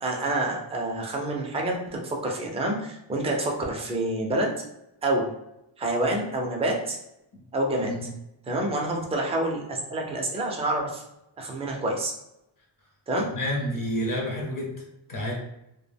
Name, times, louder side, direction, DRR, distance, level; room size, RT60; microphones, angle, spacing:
voice 1, 0.0-4.5 5.0-5.3 5.8-7.0 7.5-8.0 8.5-11.0 11.4-12.1 13.1-13.3, right 1 dB, 15° right, 0 dB, 0.3 m, -27 dB
voice 2, 13.2-14.7 15.1-15.3, equal, 45° left, -1 dB, 0.5 m, -29 dB
2.1 x 2.1 x 3.3 m, 0.86 s
wide cardioid pair, 160°, 49 cm